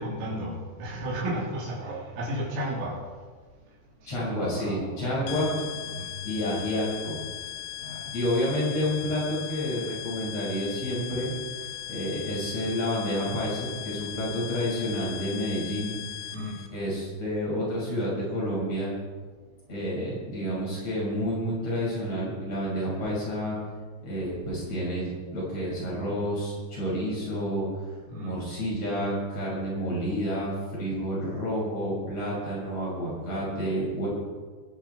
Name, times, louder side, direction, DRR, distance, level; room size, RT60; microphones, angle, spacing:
voice 1, 0.0-3.0 4.0-5.6 5.9-6.1 7.8-8.1 16.3-16.6 28.1-28.4, equal, 90° right, -7 dB, 6.1 m, -34 dB
voice 2, 4.1-5.5 6.2-7.2 8.1-11.3 11.9-15.9 16.7-18.9 19.7-23.6 24.0-27.7 28.2-34.1, equal, 30° left, -6 dB, 7.0 m, -29 dB
sound 1, 5.3-16.7, left 11 dB, 75° left, 3.0 m, -38 dB
20.5 x 11.5 x 4.7 m, 1.5 s
omnidirectional pair, 5.6 m